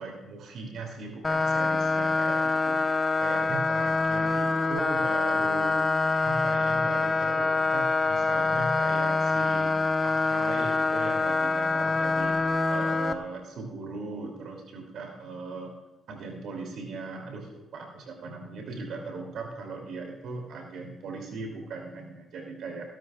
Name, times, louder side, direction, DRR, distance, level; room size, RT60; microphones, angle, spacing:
voice 1, 0.0-5.8 6.2-9.8 10.0-12.4 12.7-15.7 16.1-22.8, right 3 dB, 70° right, 2 dB, 2.7 m, -38 dB
sound 1, 1.2-13.1, left 3 dB, 25° left, 1.1 m, -25 dB
17.0 x 12.0 x 2.4 m, 1.1 s
cardioid pair, 90°, 0 cm